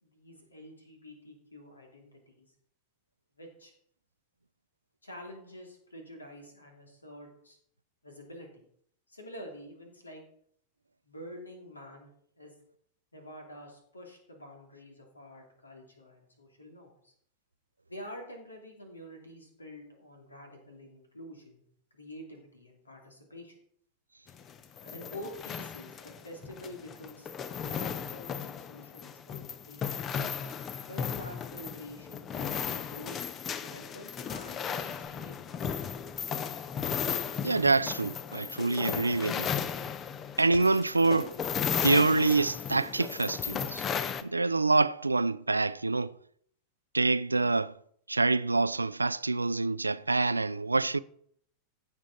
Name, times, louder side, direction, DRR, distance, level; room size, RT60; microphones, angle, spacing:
voice 1, 0.0-2.5 3.4-3.7 5.0-7.6 8.0-8.6 9.1-10.2 11.0-12.1 12.4-12.5 13.1-17.1 17.9-21.6 21.9-23.5 24.8-30.0 30.9-33.2 33.6-35.6, left 1 dB, 80° left, 2.8 m, -47 dB
sound 1, 24.3-44.2, left 7 dB, 25° left, 0.7 m, -35 dB
voice 2, 37.4-39.5 40.4-41.3 41.8-43.8 44.2-46.1 46.9-47.7 48.1-51.0, right 3 dB, 80° right, 0.3 m, -26 dB
15.5 x 6.3 x 4.1 m
figure-of-eight pair, 90°, 0 cm